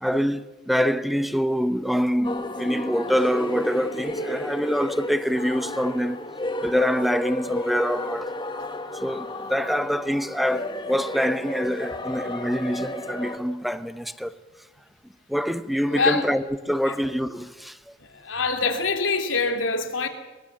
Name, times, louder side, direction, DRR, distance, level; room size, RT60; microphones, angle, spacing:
voice 1, 0.0-6.2 6.6-8.3 8.9-14.3 15.3-17.8, equal, ahead, 0.8 m, -25 dB
sound 1, 2.2-13.4, left 1 dB, 25° left, 1.8 m, -32 dB
voice 2, 15.9-16.3 18.1-20.1, left 4 dB, 85° left, 2.8 m, -24 dB
23.5 x 20.5 x 7.3 m
head